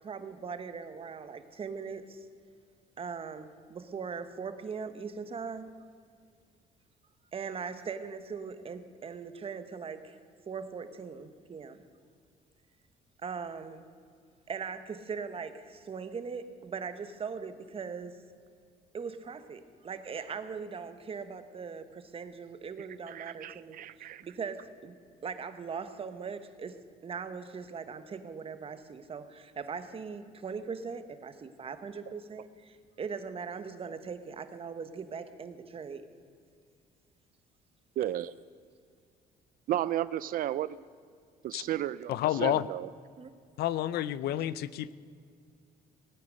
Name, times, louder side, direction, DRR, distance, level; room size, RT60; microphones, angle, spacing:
voice 1, 0.0-2.3 3.0-5.7 7.3-10.2 10.5-11.8 13.2-13.8 14.5-18.2 18.9-23.8 24.2-24.9 25.2-36.1 43.2-43.3, right 5 dB, 35° right, 10 dB, 1.1 m, -40 dB
voice 2, 22.8-24.2 38.0-38.3 39.7-40.7 41.4-42.1 42.4-42.9, right 12 dB, 55° right, 17 dB, 0.4 m, -33 dB
voice 3, 42.1-42.7 43.6-44.9, left 13 dB, 70° left, 18 dB, 0.5 m, -30 dB
18.5 x 9.6 x 6.4 m, 2.2 s
cardioid pair, 110°, 17 cm